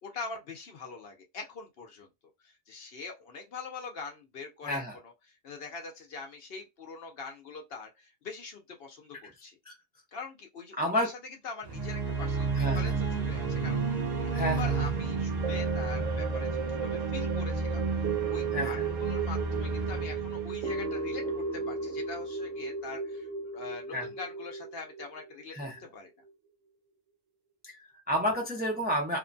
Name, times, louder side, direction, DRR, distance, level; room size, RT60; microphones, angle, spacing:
voice 1, 0.0-2.1 2.4-9.6 10.1-11.1 11.4-17.8 18.3-25.5 25.8-26.1, left 4 dB, 60° left, 0.8 m, -43 dB
voice 2, 4.6-5.0 9.6-9.7 10.8-11.1 12.6-12.9 14.3-14.7 18.5-18.8 23.9-24.1 25.5-25.8 27.6-29.2, equal, 10° right, 0.5 m, -30 dB
sound 1, 11.6-21.7, right 4 dB, 40° right, 0.8 m, -31 dB
sound 2, 15.4-25.8 26.3-26.4, right 6 dB, 80° right, 0.9 m, -35 dB
2.8 x 2.2 x 2.5 m
omnidirectional pair, 1.2 m